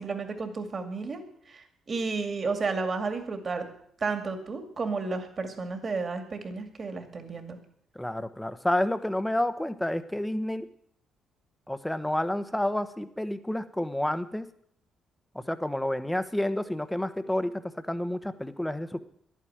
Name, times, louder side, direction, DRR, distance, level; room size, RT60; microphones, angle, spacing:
voice 1, 0.0-3.7 4.0-7.6, right 4 dB, 40° right, 6 dB, 2.3 m, -32 dB
voice 2, 7.9-10.6 11.7-14.5 15.3-17.5 17.9-19.0, left 1 dB, 5° left, 11 dB, 1.0 m, -29 dB
11.0 x 9.3 x 8.8 m, 0.66 s
cardioid pair, 90°, 0 cm